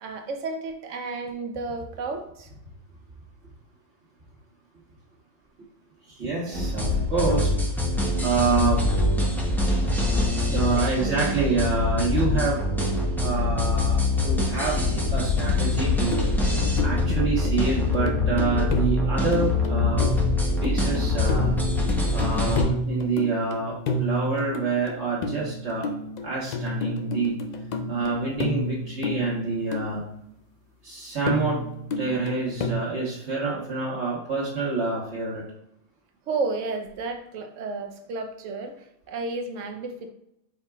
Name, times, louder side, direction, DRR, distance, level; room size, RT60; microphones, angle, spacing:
voice 1, 0.0-2.5 6.4-6.7 10.5-11.2 36.3-40.1, right 3 dB, 75° right, 5 dB, 0.9 m, -32 dB
voice 2, 6.1-7.5 8.2-8.8 10.5-12.6 13.2-16.3 16.8-20.1 20.6-21.5 22.1-26.0 26.2-27.3 27.9-30.0 30.8-31.6 32.0-35.4, right 4 dB, 60° right, -5 dB, 1.5 m, -27 dB
sound 1, 6.5-22.6, left 2 dB, ahead, 0.5 m, -24 dB
sound 2, 16.1-17.2 17.4-30.1 31.3-32.7, left 1 dB, 75° left, 0.4 m, -31 dB
4.9 x 4.2 x 2.3 m, 0.78 s
omnidirectional pair, 1.3 m